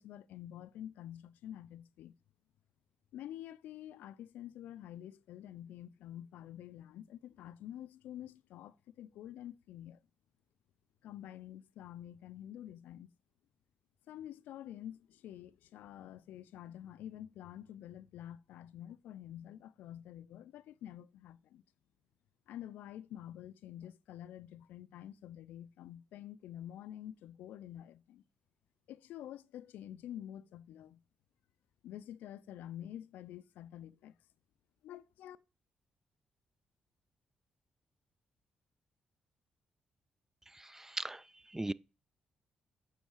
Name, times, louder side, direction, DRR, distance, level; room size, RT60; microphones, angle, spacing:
voice 1, 0.0-2.2 3.1-10.0 11.0-13.1 14.1-21.6 22.5-28.2 28.9-31.0 31.8-34.1 34.8-35.4, left 11 dB, 80° left, 0.4 m, -48 dB
voice 2, 40.5-41.2 41.5-41.7, right 2 dB, 15° right, 0.3 m, -38 dB
8.3 x 3.7 x 4.6 m
supercardioid pair, 50°, 3 cm